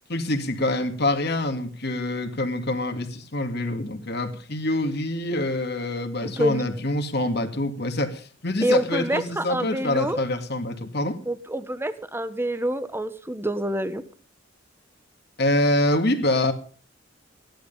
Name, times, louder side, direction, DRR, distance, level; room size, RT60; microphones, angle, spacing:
voice 1, 0.1-11.2 15.4-16.5, left 1 dB, 60° left, 2.1 m, -25 dB
voice 2, 6.2-6.6 8.6-10.2 11.3-14.0, right 1 dB, 10° right, 1.1 m, -27 dB
16.0 x 11.5 x 5.5 m
head